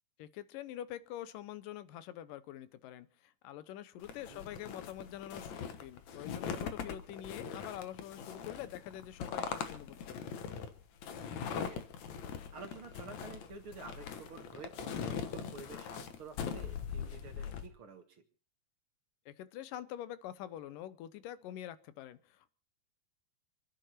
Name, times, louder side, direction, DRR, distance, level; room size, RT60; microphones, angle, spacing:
voice 1, 0.2-10.4 19.3-22.5, left 12 dB, 75° left, 15 dB, 2.4 m, -45 dB
sound 1, 4.0-17.7, left 7 dB, 60° left, 2.4 m, -41 dB
voice 2, 11.5-11.9 12.5-18.2, right 4 dB, 45° right, 5 dB, 2.0 m, -50 dB
27.5 x 10.0 x 4.4 m, 0.38 s
omnidirectional pair, 4.1 m